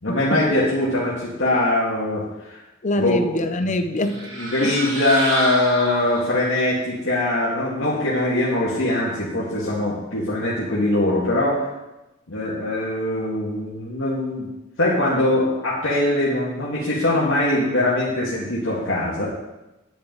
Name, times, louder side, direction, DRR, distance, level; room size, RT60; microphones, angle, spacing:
voice 1, 0.0-2.6 3.0-3.2 3.6-3.7 4.3-11.7 12.3-14.5 14.8-19.3, left 1 dB, 75° left, -7 dB, 2.0 m, -22 dB
voice 2, 2.8-4.2 4.6-4.7, left 1 dB, 40° left, 8 dB, 0.7 m, -24 dB
sound 1, 4.0-6.6, right 1 dB, 80° right, 2.3 m, -29 dB
10.0 x 9.3 x 3.9 m, 0.99 s
head